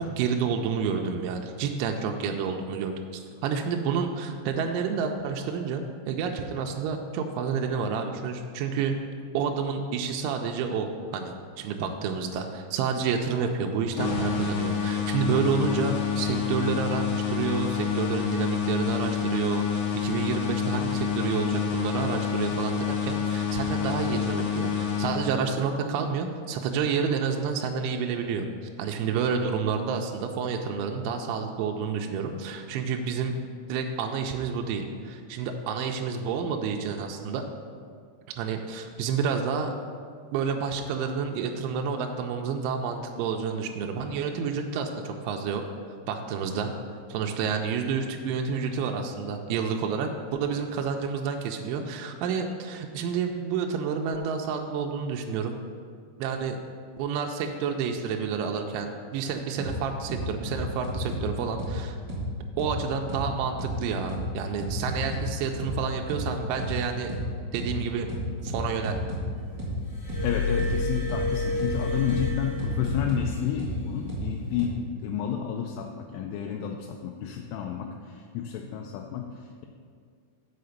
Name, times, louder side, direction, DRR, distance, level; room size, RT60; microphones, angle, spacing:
voice 1, 0.0-2.9 3.4-9.0 9.3-28.5 28.8-33.4 33.7-37.4 38.4-39.7 40.3-45.6 46.1-46.7 47.1-55.6 56.2-56.6 57.0-62.0 62.3-67.1 67.5-68.1 68.4-69.0, right 6 dB, 85° right, 3 dB, 2.9 m, -29 dB
sound 1, 14.0-25.7, left 7 dB, 70° left, 2.8 m, -28 dB
sound 2, 59.6-59.7 60.1-61.2 61.6-61.7 62.1-62.2 62.6-62.7 63.1-63.2 63.6-63.7 64.1-64.2 64.6-65.2 65.6-65.7 66.1-66.2 66.6-66.7 67.1-67.2 67.6-67.7 68.1-69.2 69.6-69.7 70.1-70.2 70.6-70.7 71.1-71.2 71.6-71.7 72.1-72.2 72.6-73.2 73.6-73.7 74.1-74.2 74.6-74.7, right 1 dB, 40° right, 1.8 m, -33 dB
Glass, 69.8-73.4 74.4-74.6, left 3 dB, 50° left, 2.8 m, -30 dB
voice 2, 70.2-74.8 75.0-79.7, left 8 dB, 85° left, 2 dB, 3.1 m, -31 dB
6.8 x 5.5 x 6.5 m, 2.1 s
omnidirectional pair, 5.6 m